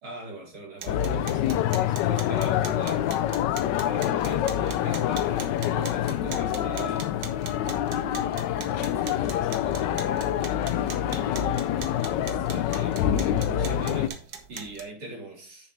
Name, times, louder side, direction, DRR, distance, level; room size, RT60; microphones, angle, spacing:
voice 1, 0.0-3.1 3.8-7.1 8.2-10.7 11.1-15.7, right 1 dB, 80° right, 4.5 m, -41 dB
sound 1, 0.8-14.8, right 6 dB, 60° right, 1.6 m, -42 dB
sound 2, 0.9-14.1, left 11 dB, 70° left, 1.1 m, -26 dB
sound 3, 2.9-14.2, left 7 dB, 90° left, 1.6 m, -40 dB
8.1 x 6.9 x 3.2 m
omnidirectional pair, 2.2 m